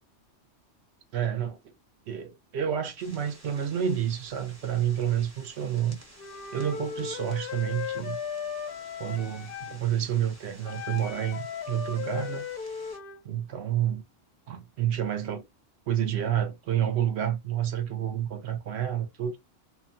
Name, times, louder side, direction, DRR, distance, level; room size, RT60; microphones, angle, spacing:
voice 1, 1.1-1.6 2.1-6.0 6.5-8.2 9.0-12.4 13.2-14.0 14.5-15.4 15.9-19.4, right 10 dB, 65° right, 0.8 m, -29 dB
sound 1, 3.0-13.0, right 1 dB, 15° right, 0.8 m, -53 dB
Wind instrument woodwind instrument, 6.2-9.8 10.6-13.2, left 7 dB, 60° left, 0.6 m, -37 dB
2.9 x 2.2 x 2.4 m
omnidirectional pair, 1.3 m